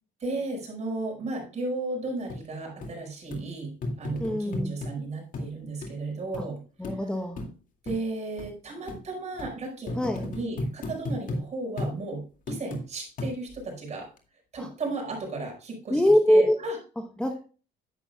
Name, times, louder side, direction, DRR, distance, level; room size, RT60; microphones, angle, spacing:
voice 1, 0.2-6.6 7.8-14.0 14.5-16.0 16.3-16.8, right 2 dB, 40° right, 1 dB, 5.1 m, -34 dB
sound 1, 2.3-2.4 2.8-2.9 3.3-3.4 3.8-4.9 5.3-5.5 5.8-5.9 6.3-6.5 6.8-7.0 7.4-7.5 7.9-8.0 8.4-8.5 8.9-9.0 9.4-9.5 9.9-11.4 11.8-12.0 12.5-12.8 13.2-13.6 14.2-14.3, left 1 dB, 50° left, 2.3 m, -33 dB
voice 2, 4.2-4.7 6.4-6.5 6.8-7.4 10.0-10.2 14.6-14.7 15.9-16.6 17.2-17.4, equal, 5° left, 4 dB, 1.0 m, -23 dB
10.5 x 8.9 x 2.3 m, 0.36 s
cardioid pair, 110°, 17 cm